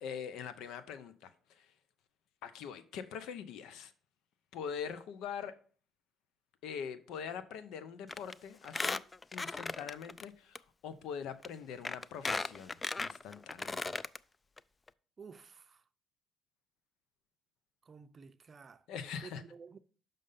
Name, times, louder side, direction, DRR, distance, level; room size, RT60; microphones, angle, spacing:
voice 1, 0.0-1.7 2.4-3.9 4.5-5.5 6.6-9.0 9.3-13.9 18.9-19.4, left 7 dB, 80° left, 0.7 m, -43 dB
Squeak, 8.1-8.3 8.6-10.2 10.5-10.6 11.4-11.5 11.8-14.2 14.6-14.7 14.9-15.0, left 3 dB, 25° left, 0.3 m, -36 dB
voice 2, 15.2-15.8 17.8-18.9 19.2-19.8, right 5 dB, 35° right, 0.5 m, -52 dB
6.5 x 5.4 x 5.5 m
cardioid pair, 85°, 0 cm